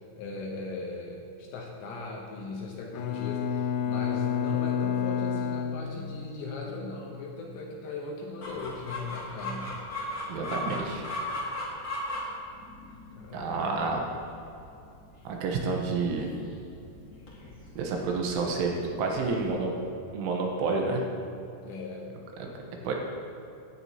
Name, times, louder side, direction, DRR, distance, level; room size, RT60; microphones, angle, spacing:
voice 1, 0.2-9.7 13.1-14.0 21.6-22.2 22.8-22.9, left 3 dB, 75° left, -1 dB, 2.9 m, -38 dB
Bowed string instrument, 2.9-6.5, left 8 dB, 90° left, 2.6 m, -30 dB
Chicken rooster, 8.4-19.5, left 1 dB, 40° left, 1.6 m, -38 dB
voice 2, 10.3-11.1 13.3-14.0 15.3-16.3 17.8-19.7 20.1-21.0 22.4-22.5 22.9-23.0, right 4 dB, 75° right, 1 dB, 3.5 m, -29 dB
17.5 x 10.5 x 2.9 m, 2.7 s
omnidirectional pair, 6.0 m